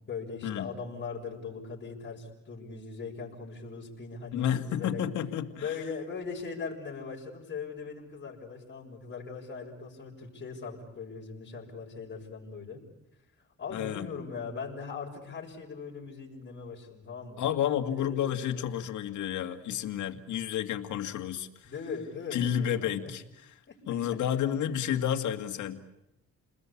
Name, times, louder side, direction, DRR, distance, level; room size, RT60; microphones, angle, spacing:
voice 1, 0.1-5.0 5.5-12.8 13.6-17.4 17.9-18.7 21.6-23.1 23.7-23.8 24.1-24.2, left 5 dB, 40° left, -2 dB, 6.7 m, -40 dB
voice 2, 4.3-5.8 13.7-14.1 17.4-21.7 22.3-23.5 23.9-25.8, left 10 dB, 75° left, 6 dB, 2.2 m, -31 dB
29.5 x 20.5 x 8.6 m, 0.90 s
cardioid pair, 90°, 30 cm